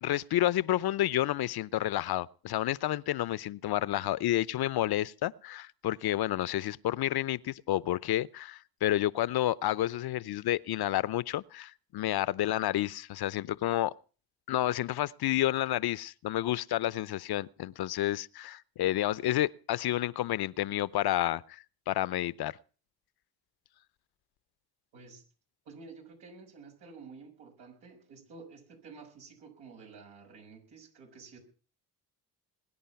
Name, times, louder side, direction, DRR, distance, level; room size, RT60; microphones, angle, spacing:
voice 1, 0.0-13.9 14.5-22.6, left 14 dB, 65° left, 0.7 m, -30 dB
voice 2, 24.9-25.2 25.6-31.4, right 4 dB, 90° right, 6.3 m, -51 dB
21.5 x 10.0 x 5.8 m
supercardioid pair, 70°, 41 cm